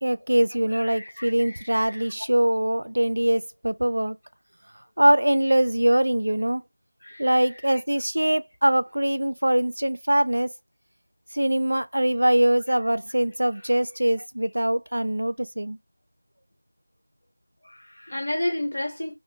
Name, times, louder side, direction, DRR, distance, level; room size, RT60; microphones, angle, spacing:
voice 1, 0.0-4.2 5.0-6.6 7.2-10.5 11.3-15.8, right 1 dB, 85° right, 0.3 m, -22 dB
voice 2, 0.7-2.1 7.0-7.3 7.6-7.8 17.6-19.2, left 1 dB, 60° left, 1.1 m, -32 dB
2.1 x 2.0 x 3.7 m
figure-of-eight pair, 175°, 0 cm